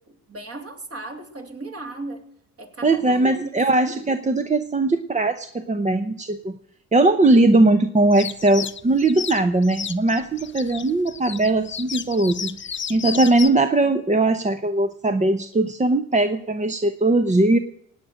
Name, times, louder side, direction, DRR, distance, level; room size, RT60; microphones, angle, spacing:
voice 1, 0.1-2.3 2.6-4.0, right 2 dB, 40° right, 4 dB, 3.1 m, -36 dB
voice 2, 2.8-6.6 6.9-12.6 12.9-17.6, right 2 dB, 20° right, 9 dB, 0.8 m, -19 dB
sound 1, 8.1-13.5, left 7 dB, 30° left, 0.8 m, -32 dB
17.5 x 8.8 x 6.4 m, 0.71 s
supercardioid pair, 75°, 36 cm